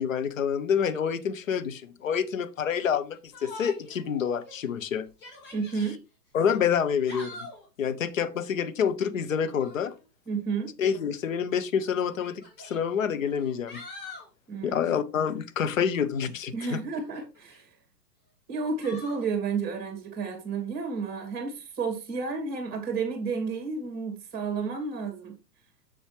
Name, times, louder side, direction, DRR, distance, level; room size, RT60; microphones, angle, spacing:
voice 1, 0.0-5.1 6.3-7.4 7.8-9.9 10.8-13.8 14.6-16.8, left 7 dB, 50° left, 1.0 m, -27 dB
Yell, 3.3-4.0 4.4-4.5 5.1-6.0 6.8-7.7 9.4-9.9 11.0-11.1 12.0-12.8 13.3-14.3 16.9-17.6 18.8-19.3, left 2 dB, 20° left, 3.1 m, -44 dB
voice 2, 5.5-6.0 10.3-10.7 14.5-14.8 16.5-17.7 18.5-25.4, right 5 dB, 20° right, 2.5 m, -31 dB
7.1 x 7.0 x 3.3 m
figure-of-eight pair, 115°, 50 cm